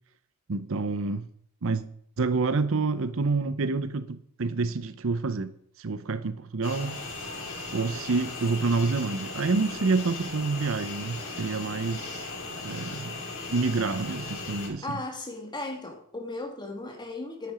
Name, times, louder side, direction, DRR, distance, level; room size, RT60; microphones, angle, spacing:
voice 1, 0.5-1.3 1.6-1.8 2.2-7.0 7.7-12.3 12.6-13.2 13.5-14.8, right 3 dB, 65° right, 0.7 m, -28 dB
sound 1, 6.6-14.7, left 3 dB, 70° left, 4.4 m, -37 dB
voice 2, 14.8-17.5, left 2 dB, 20° left, 1.9 m, -36 dB
10.5 x 9.4 x 5.0 m
head